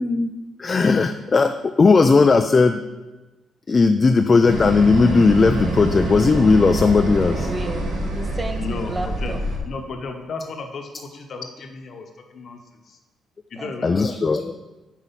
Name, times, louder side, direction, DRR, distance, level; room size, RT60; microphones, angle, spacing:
voice 1, 0.0-2.8 3.7-7.5 13.8-14.6, left 4 dB, 35° left, 7 dB, 0.3 m, -17 dB
sound 1, 4.5-9.6, right 1 dB, 65° right, 1.3 m, -26 dB
voice 2, 7.5-9.4 13.5-14.5, right 1 dB, 20° right, 6 dB, 0.7 m, -33 dB
voice 3, 8.6-9.3 9.7-12.6 12.9-13.0 13.5-14.1, left 4 dB, 55° left, 4 dB, 0.9 m, -34 dB
5.9 x 4.5 x 5.6 m, 1.1 s
cardioid pair, 90°, 0 cm